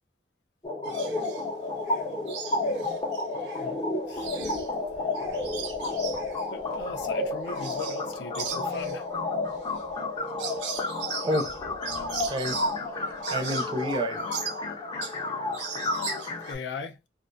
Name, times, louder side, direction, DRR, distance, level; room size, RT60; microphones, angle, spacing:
sound 1, 0.6-16.5, left 2 dB, 25° left, 0.5 m, -31 dB
sound 2, 0.8-1.4 1.9-3.7 4.0-8.1 8.3-15.3 15.5-16.5, right 7 dB, 80° right, 0.5 m, -39 dB
voice 1, 3.5-5.1 6.5-9.1 16.5-17.0, left 3 dB, 75° left, 0.5 m, -39 dB
voice 2, 11.2-11.6 12.2-12.7 12.9-14.3, equal, 30° right, 0.4 m, -30 dB
2.4 x 2.1 x 2.5 m
head